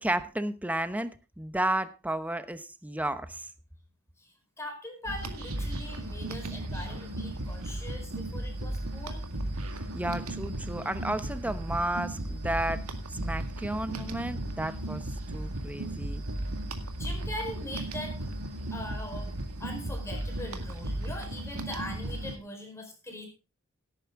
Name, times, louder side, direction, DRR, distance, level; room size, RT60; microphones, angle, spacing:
voice 1, 0.0-3.5 9.9-12.8 13.2-15.0 15.3-16.2, right 1 dB, 5° right, 12 dB, 0.8 m, -32 dB
voice 2, 4.2-9.2 17.0-18.2 18.7-19.3 19.6-23.3, left 1 dB, 10° left, 3 dB, 4.6 m, -41 dB
sound 1, 5.0-22.4, right 1 dB, 75° right, 2.0 m, -35 dB
17.5 x 9.4 x 3.7 m, 0.30 s
head